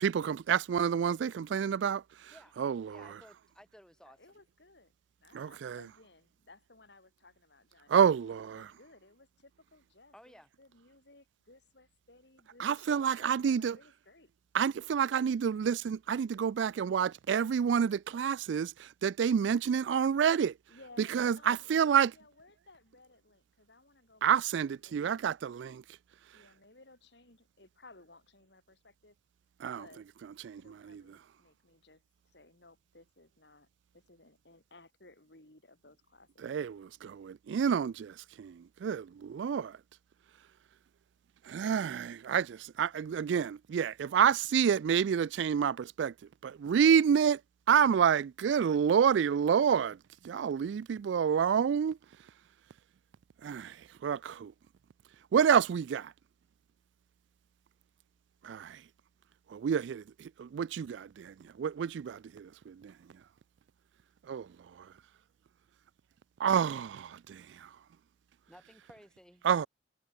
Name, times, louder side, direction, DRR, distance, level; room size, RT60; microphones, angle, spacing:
voice 1, 0.0-2.0 2.6-3.0 5.3-5.8 7.9-8.6 12.6-13.7 14.5-18.7 19.0-20.5 21.1-22.1 24.2-25.8 29.6-29.8 30.5-30.6 30.9-31.0 36.4-38.1 38.4-38.5 38.8-39.7 41.5-46.1 46.4-47.4 47.7-50.0 50.2-52.0 53.4-53.7 54.0-54.5 55.3-56.1 58.4-58.8 59.5-60.0 60.4-62.7 64.3-64.5 66.4-67.4 69.4-69.7, right 7 dB, 75° right, 0.3 m, -28 dB
voice 2, 2.9-4.2 10.1-10.5 68.5-69.4, equal, 5° left, 3.6 m, -56 dB
voice 3, 4.0-4.9 5.2-14.3 20.7-21.7 21.9-25.3 26.3-29.2 29.7-30.0 30.6-33.7 33.9-36.6, left 2 dB, 65° left, 3.4 m, -59 dB
head